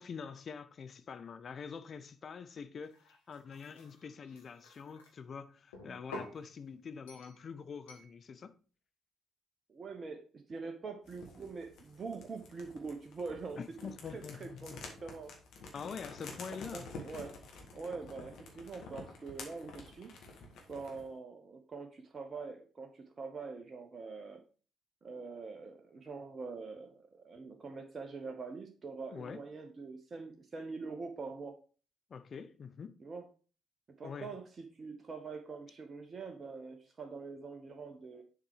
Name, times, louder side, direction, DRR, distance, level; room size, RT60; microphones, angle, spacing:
voice 1, 0.0-8.5 13.6-14.8 15.7-16.9 29.1-29.4 32.1-33.0 34.0-34.3, left 6 dB, 45° left, 0.7 m, -45 dB
sound 1, 2.8-5.1 5.7-6.4 7.1-7.4 7.9-8.1, left 2 dB, 80° left, 1.4 m, -50 dB
voice 2, 9.7-15.3 16.7-17.4 17.7-20.1 20.7-24.4 25.0-31.6 33.0-33.2 34.0-38.2, right 4 dB, 40° right, 1.0 m, -44 dB
sound 2, 11.1-21.1, left 3 dB, 60° left, 1.6 m, -50 dB
7.2 x 4.4 x 4.8 m
figure-of-eight pair, 45°, 0 cm